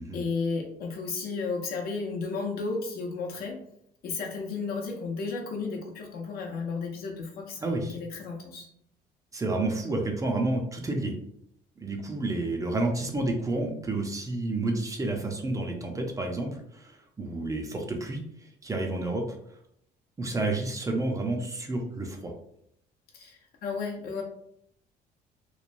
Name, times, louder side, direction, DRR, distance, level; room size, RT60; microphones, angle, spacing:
voice 1, 0.0-3.6 4.0-8.7 23.1-24.2, left 4 dB, 65° left, 1 dB, 0.7 m, -33 dB
voice 2, 7.6-8.0 9.3-11.1 11.8-19.4 20.2-22.3, right 2 dB, 20° right, 2 dB, 0.5 m, -30 dB
3.1 x 2.1 x 2.5 m, 0.72 s
cardioid pair, 110°, 17 cm